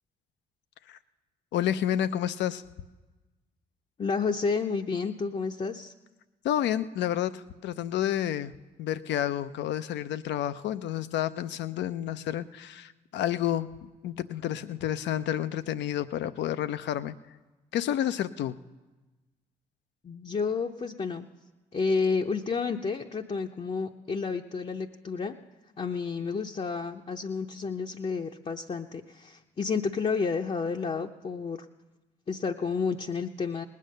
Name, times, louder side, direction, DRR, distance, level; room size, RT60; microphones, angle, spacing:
voice 1, 1.5-2.6 6.4-8.5 8.8-17.1 17.7-18.6, left 11 dB, 70° left, 13 dB, 0.6 m, -30 dB
voice 2, 4.0-5.9 20.0-21.3 21.7-25.4 25.8-31.6 32.3-33.7, left 5 dB, 35° left, 2 dB, 0.7 m, -30 dB
19.5 x 8.6 x 6.5 m, 1.2 s
hypercardioid pair, 50°, 19 cm